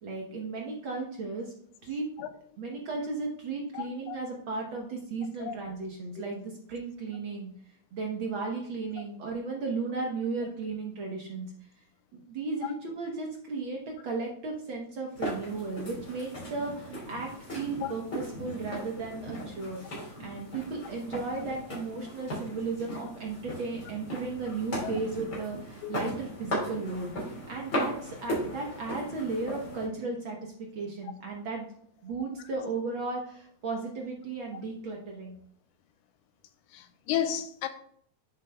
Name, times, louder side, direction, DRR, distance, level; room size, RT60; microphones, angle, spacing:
voice 1, 0.0-1.5 1.8-2.1 2.6-7.5 7.9-11.5 12.1-19.8 20.2-27.1 27.5-31.7 32.0-35.4, right 3 dB, 65° right, 1.3 m, -35 dB
voice 2, 3.7-4.2 5.4-5.6 6.2-6.3 17.8-17.9 24.8-24.9 25.8-25.9 36.7-37.7, left 10 dB, 85° left, 2.1 m, -33 dB
sound 1, 15.1-29.9, equal, 30° left, 4.0 m, -37 dB
10.0 x 7.7 x 2.2 m
omnidirectional pair, 3.5 m